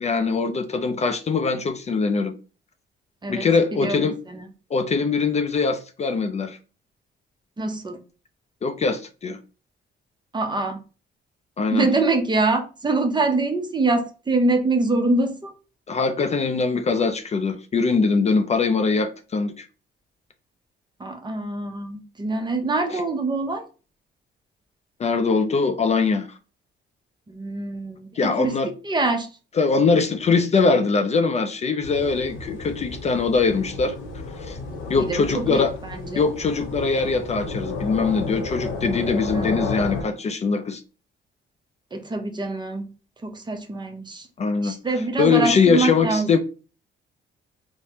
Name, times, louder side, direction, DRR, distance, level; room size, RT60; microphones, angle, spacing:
voice 1, 0.0-2.3 3.3-4.2 4.7-6.6 8.6-9.4 11.6-11.9 15.9-19.7 22.9-23.0 25.0-26.3 28.1-28.7 29.6-34.0 34.4-34.6 34.9-35.7 36.1-40.8 44.4-44.7 45.2-46.4, left 4 dB, 35° left, 0.4 m, -22 dB
voice 2, 7.6-8.0 10.3-10.8 11.7-15.5 21.0-23.6 27.3-28.5 28.8-29.3 35.0-36.2 39.3-40.1 41.9-42.9 43.2-44.3 44.6-46.3, right 3 dB, 20° right, 0.6 m, -25 dB
sound 1, 31.8-40.0, left 3 dB, 85° left, 0.9 m, -32 dB
3.3 x 2.0 x 2.7 m
cardioid pair, 90°, 20 cm